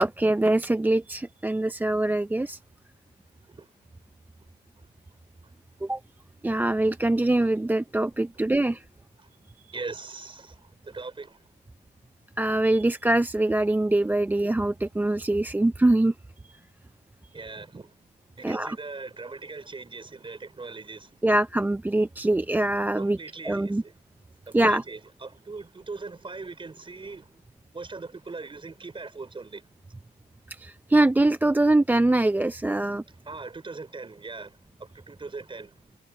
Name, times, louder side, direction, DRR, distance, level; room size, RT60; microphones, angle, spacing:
voice 1, 0.0-2.6 5.8-6.0 6.4-8.8 12.4-16.1 18.4-18.8 21.2-23.2 23.4-23.8 24.5-24.8 30.6-33.0, right 2 dB, 10° right, 0.5 m, -23 dB
voice 2, 9.7-11.4 17.3-17.9 18.4-21.1 22.9-23.9 24.5-27.3 27.7-29.6 33.2-35.7, right 3 dB, 25° right, 5.0 m, -40 dB
cardioid pair, 90°, 20 cm